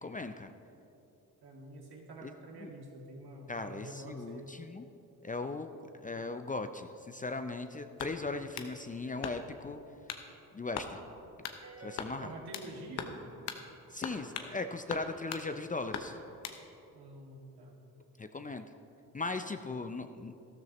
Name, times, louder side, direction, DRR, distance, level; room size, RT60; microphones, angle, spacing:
voice 1, 0.0-0.5 2.2-2.3 2.6-2.7 3.5-4.8 5.2-5.7 6.0-9.8 10.5-11.0 11.8-12.3 13.9-16.2 18.2-18.7 19.1-20.4, left 3 dB, 20° left, 8 dB, 0.5 m, -38 dB
voice 2, 1.4-4.7 12.2-13.2 16.9-17.8, right 1 dB, 65° right, -1 dB, 2.3 m, -47 dB
sound 1, 8.0-8.7 9.2-9.6 10.1-10.3 10.7-10.9 11.4-11.6 12.0-12.7 13.0-13.2 13.5-13.6 14.0-14.5 14.9-15.5 15.9-16.6, left 8 dB, 80° left, 0.9 m, -40 dB
sound 2, 11.6-13.3, right 3 dB, 35° right, 2.7 m, -52 dB
13.0 x 13.0 x 3.1 m, 2.9 s
hypercardioid pair, 50°, 41 cm